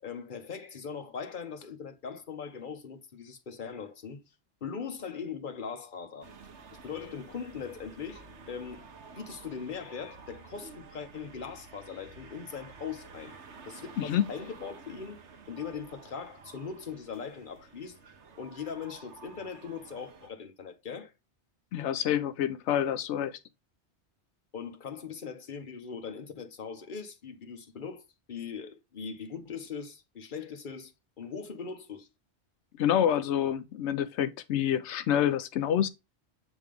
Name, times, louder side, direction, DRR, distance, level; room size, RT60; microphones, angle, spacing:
voice 1, 0.0-4.2 4.6-6.3 6.8-8.9 9.2-13.4 13.7-15.2 15.5-18.0 18.4-21.1 24.5-32.1, left 6 dB, 50° left, 1.2 m, -40 dB
sound 1, 6.2-20.3, right 4 dB, 85° right, 1.4 m, -51 dB
voice 2, 14.0-14.3 21.7-23.4 32.8-35.9, left 10 dB, 90° left, 0.9 m, -27 dB
8.4 x 3.5 x 3.5 m
omnidirectional pair, 1.2 m